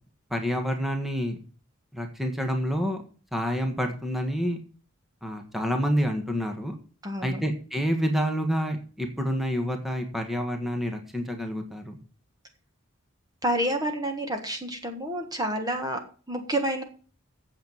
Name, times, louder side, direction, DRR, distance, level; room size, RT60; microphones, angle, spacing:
voice 1, 0.3-1.4 1.9-3.0 3.3-4.6 5.2-6.8 7.2-12.0, equal, ahead, 4 dB, 1.6 m, -28 dB
voice 2, 7.0-7.4 13.4-16.8, right 1 dB, 20° right, 5 dB, 1.6 m, -29 dB
9.2 x 7.5 x 8.8 m, 0.40 s
head